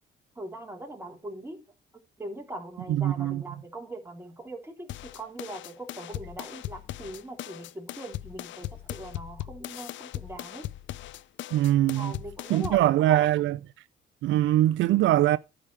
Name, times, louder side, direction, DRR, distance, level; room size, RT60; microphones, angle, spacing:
voice 1, 0.3-1.6 2.2-10.7 11.7-13.3, right 1 dB, 10° right, 3.3 m, -41 dB
voice 2, 2.9-3.4 11.5-12.1 12.5-13.6 14.2-15.4, right 14 dB, 75° right, 0.4 m, -22 dB
sound 1, 4.9-12.9, left 14 dB, 70° left, 0.5 m, -39 dB
10.0 x 5.0 x 6.2 m
cardioid pair, 90°, 20 cm